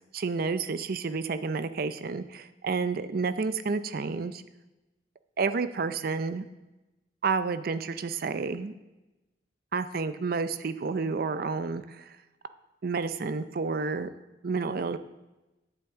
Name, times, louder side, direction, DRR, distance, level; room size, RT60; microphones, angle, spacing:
voice 1, 0.1-4.4 5.4-6.4 7.2-8.7 9.7-12.2 12.8-14.1 14.4-15.0, right 4 dB, 55° right, 12 dB, 0.5 m, -30 dB
10.5 x 8.1 x 3.6 m, 1.0 s
head